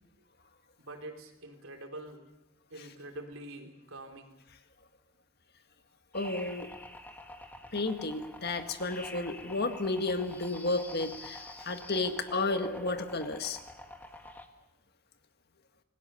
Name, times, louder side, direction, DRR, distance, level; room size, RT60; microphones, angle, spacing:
voice 1, 0.8-2.3 2.7-4.3, right 1 dB, 85° right, 4 dB, 3.5 m, -45 dB
voice 2, 6.1-6.7 7.7-13.6, left 2 dB, 50° left, 7 dB, 1.8 m, -32 dB
sound 1, 6.1-14.5, left 1 dB, 10° left, 1.7 m, -46 dB
27.5 x 20.0 x 6.9 m, 0.91 s
head